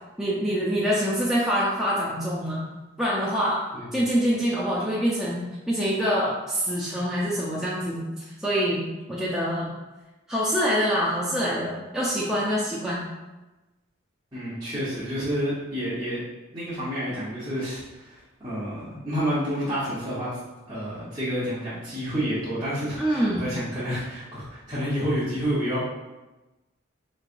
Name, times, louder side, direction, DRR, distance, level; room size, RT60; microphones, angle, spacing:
voice 1, 0.2-2.7 3.0-3.6 3.9-9.7 10.3-13.0 23.0-23.5, equal, 5° right, -7 dB, 0.5 m, -25 dB
voice 2, 3.7-4.3 14.3-16.2 16.5-20.4 20.7-25.8, equal, 20° right, -12 dB, 1.0 m, -29 dB
5.4 x 3.2 x 2.5 m, 1.1 s
head